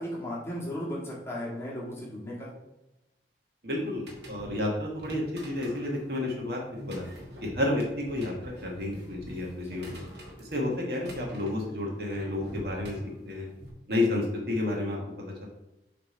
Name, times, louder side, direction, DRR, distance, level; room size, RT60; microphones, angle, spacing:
voice 1, 0.0-2.5 9.6-10.0, equal, 15° left, -6 dB, 1.7 m, -36 dB
voice 2, 3.6-7.0 7.4-10.0 10.5-13.0 13.2-13.5 13.9-15.5, left 1 dB, 60° right, -1 dB, 1.4 m, -31 dB
sound 1, 3.7-13.7, equal, 80° right, 1.5 m, -46 dB
6.6 x 3.4 x 4.3 m, 0.95 s
head